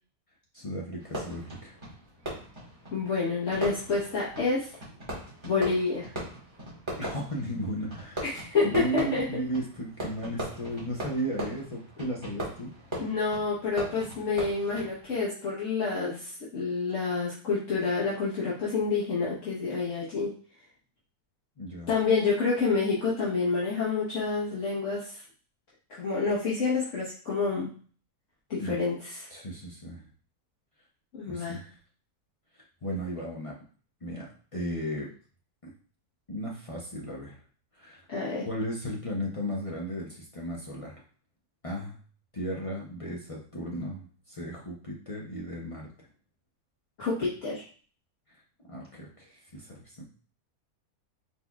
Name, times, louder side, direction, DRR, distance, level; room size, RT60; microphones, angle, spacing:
voice 1, 0.5-1.7 7.0-8.3 8.6-12.7 21.6-21.9 28.6-28.8 29.3-30.0 31.3-31.8 32.8-33.6 34.0-35.1 35.6-35.7 36.3-37.4 37.7-38.0 38.4-41.0 41.6-42.0 42.3-46.1 48.3-48.4 48.7-50.0, equal, 40° left, -3 dB, 0.4 m, -35 dB
Fireworks, 1.0-15.2, equal, 20° right, 1.5 m, -40 dB
voice 2, 2.9-4.7 5.4-6.1 8.2-9.3 13.0-20.3 21.9-25.2 25.9-27.7 28.5-29.3 31.1-31.6 38.1-38.5 47.0-47.6, left 4 dB, 60° left, -8 dB, 1.4 m, -28 dB
4.4 x 4.0 x 2.3 m, 0.42 s
omnidirectional pair, 1.6 m